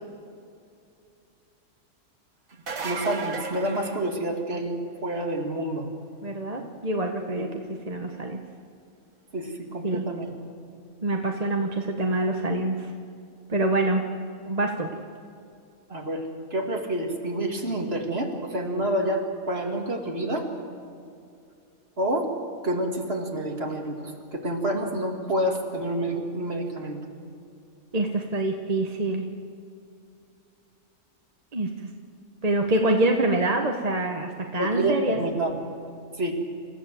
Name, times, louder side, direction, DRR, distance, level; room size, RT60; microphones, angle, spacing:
sound 1, 2.5-4.7 10.2-10.3 12.2-12.3, right 4 dB, 75° right, 2.2 m, -35 dB
voice 1, 2.8-5.9 7.4-7.5 9.3-10.3 15.9-16.2 16.5-20.5 22.0-22.3 22.6-27.1 34.6-35.5 36.2-36.3, right 1 dB, 45° right, 1 dB, 2.7 m, -28 dB
voice 2, 6.2-7.5 7.9-8.4 9.8-10.0 11.0-12.9 13.5-14.0 14.5-14.9 27.9-29.3 31.5-31.7 32.4-35.4, right 2 dB, 30° right, 2 dB, 1.2 m, -25 dB
28.0 x 14.5 x 7.7 m, 2.5 s
omnidirectional pair, 1.5 m